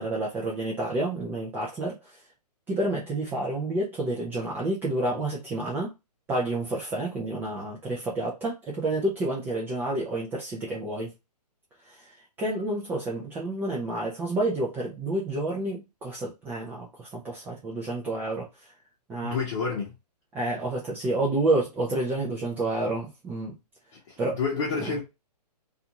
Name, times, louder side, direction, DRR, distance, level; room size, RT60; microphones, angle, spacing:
voice 1, 0.0-2.2 2.7-5.9 6.3-11.1 11.8-18.7 19.1-19.4 20.3-23.6 24.2-24.4 24.8-24.9, right 2 dB, 10° right, 0.4 m, -29 dB
voice 2, 19.2-19.9 24.1-25.0, left 5 dB, 45° left, 0.9 m, -29 dB
2.5 x 2.3 x 2.8 m
hypercardioid pair, 140°, 21 cm